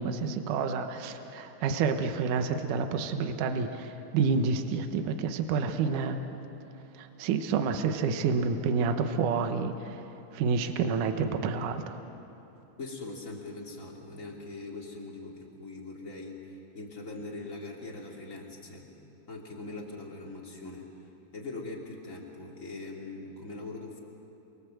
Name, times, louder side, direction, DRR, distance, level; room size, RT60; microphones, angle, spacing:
voice 1, 0.0-6.2 7.0-10.0 10.3-12.0, right 5 dB, 70° right, 6 dB, 2.5 m, -29 dB
voice 2, 12.8-18.8 19.3-20.9 21.3-24.0, left 2 dB, 25° left, -1 dB, 3.1 m, -41 dB
29.0 x 23.5 x 7.8 m, 3.0 s
omnidirectional pair, 4.1 m